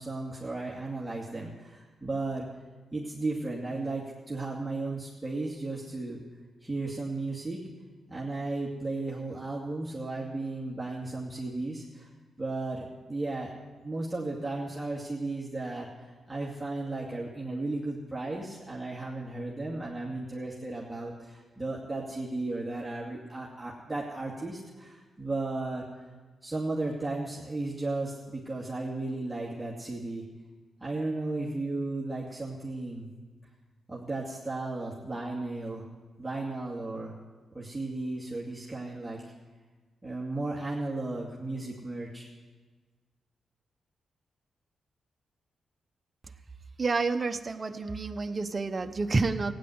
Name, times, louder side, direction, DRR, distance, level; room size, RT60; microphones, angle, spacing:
voice 1, 0.0-2.5 2.9-6.2 6.6-7.6 8.1-12.1 12.4-13.5 13.8-25.8 26.4-30.2 30.8-33.1 33.9-35.9 36.2-37.1 37.5-39.3 40.0-42.3, right 2 dB, 10° right, -5 dB, 2.4 m, -35 dB
voice 2, 46.8-49.5, right 3 dB, 40° right, 8 dB, 0.9 m, -29 dB
16.0 x 9.7 x 8.0 m, 1.4 s
cardioid pair, 70°, 0 cm